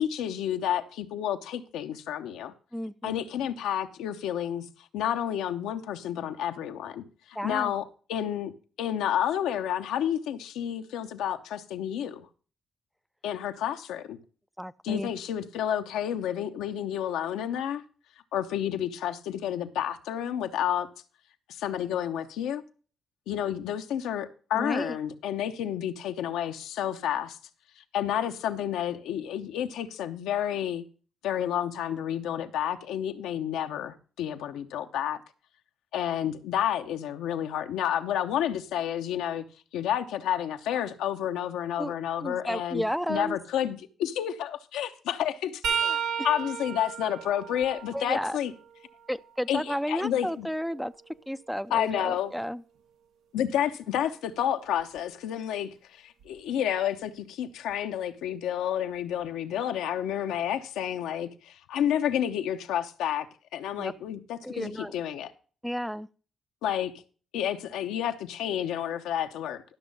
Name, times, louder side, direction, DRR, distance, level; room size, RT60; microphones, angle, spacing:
voice 1, 0.0-2.5 3.0-4.7 4.9-7.0 7.4-7.8 8.1-8.5 8.8-12.3 13.2-14.2 14.8-17.8 18.3-20.9 21.5-22.6 23.3-27.4 27.9-30.8 31.2-35.2 35.9-39.4 39.7-42.8 43.1-46.0 46.2-48.5 49.5-50.5 51.7-52.3 53.3-63.3 63.5-65.3 66.6-66.9 67.3-69.6, left 10 dB, 85° left, 0.8 m, -30 dB
voice 2, 2.7-3.3 7.4-7.7 14.6-15.1 24.5-25.0 41.8-41.9 42.2-43.4 47.9-48.4 49.1-50.9 51.3-52.6 63.8-63.9 64.4-64.9 65.6-66.1, equal, ahead, 0.5 m, -32 dB
sound 1, 45.6-49.4 49.9-51.9 54.8-55.0 56.2-56.4 57.7-57.8, right 7 dB, 85° right, 1.0 m, -35 dB
12.5 x 6.2 x 5.4 m
supercardioid pair, 60°, 0 cm